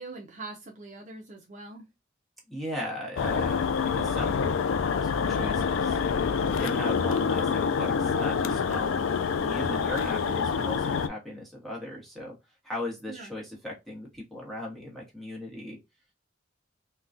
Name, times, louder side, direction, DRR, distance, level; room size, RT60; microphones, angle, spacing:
voice 1, 0.0-1.9 13.1-13.3, right 3 dB, 40° right, 1 dB, 0.6 m, -42 dB
voice 2, 2.5-4.6 5.0-6.0 6.6-12.3 12.6-15.8, left 1 dB, ahead, -3 dB, 1.1 m, -37 dB
sound 1, 3.2-11.1, left 6 dB, 85° left, 0.4 m, -26 dB
3.8 x 2.2 x 2.5 m, 0.21 s
head